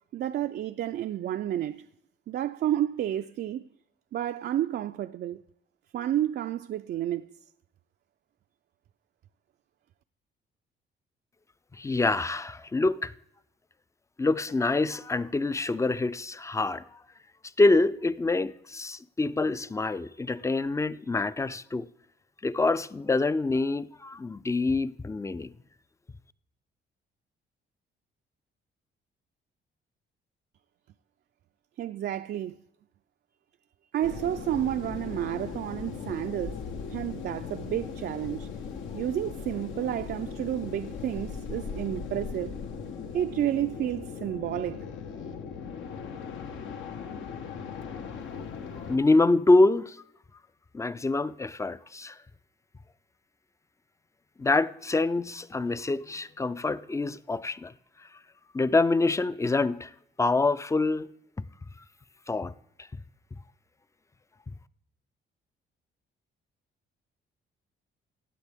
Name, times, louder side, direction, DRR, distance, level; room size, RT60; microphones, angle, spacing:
voice 1, 0.1-1.9 2.3-3.7 4.1-5.4 5.9-7.3 31.8-32.6 33.9-36.6 36.9-38.5 38.9-42.6 43.1-44.8, right 12 dB, 55° right, 0.4 m, -30 dB
voice 2, 11.8-13.1 14.2-16.8 17.6-21.9 22.4-25.5 48.9-50.0 50.7-52.2 54.4-57.7 58.5-59.9 60.2-61.1 62.3-62.5, left 2 dB, 15° left, 0.4 m, -26 dB
sound 1, 34.0-49.0, left 6 dB, 75° left, 1.2 m, -38 dB
16.0 x 9.3 x 3.5 m
cardioid pair, 90°, 20 cm